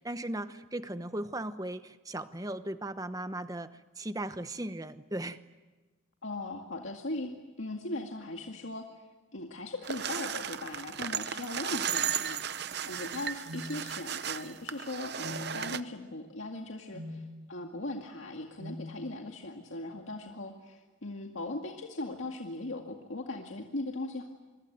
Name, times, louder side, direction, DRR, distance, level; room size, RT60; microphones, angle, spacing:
voice 1, 0.0-5.4, right 1 dB, 15° right, 11 dB, 1.0 m, -37 dB
voice 2, 6.2-8.9 9.3-17.2 17.5-24.2, left 2 dB, 75° left, 2 dB, 2.1 m, -39 dB
sound 1, 9.8-15.8, right 8 dB, 55° right, 0.8 m, -35 dB
sound 2, 13.5-13.7 15.2-15.5 16.9-17.2 18.6-18.9, left 1 dB, 90° right, 4.8 m, -41 dB
26.5 x 24.0 x 9.4 m, 1.2 s
head